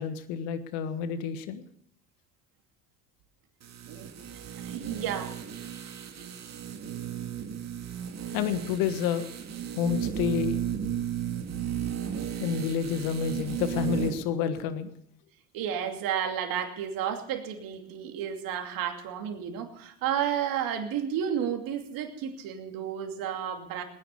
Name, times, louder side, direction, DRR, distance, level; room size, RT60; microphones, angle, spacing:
voice 1, 0.0-1.6 8.3-9.3 9.8-10.6 12.4-14.9, left 8 dB, 75° left, 10 dB, 1.5 m, -29 dB
sound 1, 3.6-14.3 14.6-14.7, right 9 dB, 45° right, 2.3 m, -34 dB
voice 2, 4.6-5.4 15.5-23.8, right 9 dB, 65° right, 5 dB, 2.7 m, -32 dB
20.0 x 10.0 x 6.7 m, 0.69 s
hypercardioid pair, 70°, 36 cm